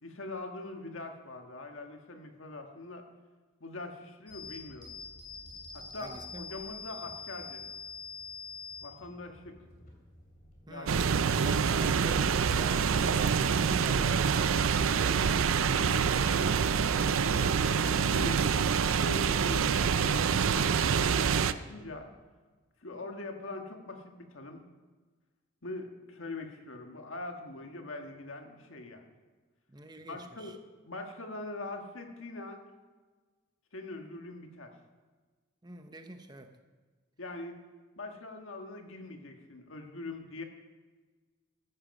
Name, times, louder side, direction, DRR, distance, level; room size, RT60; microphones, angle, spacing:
voice 1, 0.0-3.0 3.6-4.9 5.7-7.6 8.8-9.6 10.7-10.9 15.5-16.7 17.3-18.4 18.8-22.1 22.8-24.6 25.6-29.1 30.1-32.6 33.7-34.7 37.2-37.6 38.0-40.4, left 2 dB, 70° left, 4 dB, 1.5 m, -43 dB
sound 1, 4.3-10.7, left 5 dB, 45° left, 3.0 m, -45 dB
voice 2, 6.0-6.5 10.7-15.4 29.7-30.6 35.6-36.5, right 2 dB, 20° right, 6 dB, 0.8 m, -46 dB
sound 2, 10.9-21.5, right 6 dB, 80° right, 0.5 m, -26 dB
14.0 x 10.0 x 5.4 m, 1.4 s
head